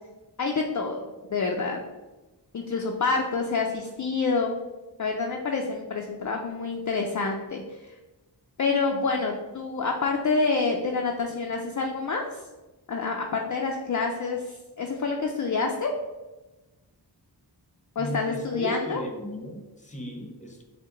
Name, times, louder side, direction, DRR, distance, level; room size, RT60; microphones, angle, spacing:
voice 1, 0.4-1.0 1.3-1.8 2.5-4.6 5.0-8.0 8.6-12.4 12.9-15.9 18.0-19.0, left 4 dB, 45° left, 1 dB, 0.5 m, -27 dB
voice 2, 18.0-20.6, equal, 15° left, 1 dB, 0.8 m, -36 dB
6.4 x 2.2 x 3.8 m, 1.1 s
wide cardioid pair, 75°, 43 cm